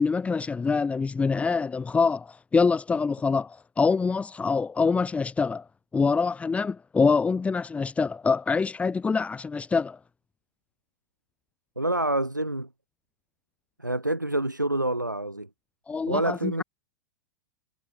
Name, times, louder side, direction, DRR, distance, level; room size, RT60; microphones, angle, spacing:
voice 1, 0.0-5.6 5.9-10.0 15.9-16.6, left 4 dB, 15° left, 3.5 m, -25 dB
voice 2, 11.8-12.7 13.8-15.5 16.1-16.6, right 1 dB, 85° right, 4.3 m, -27 dB
figure-of-eight pair, 95°, 10 cm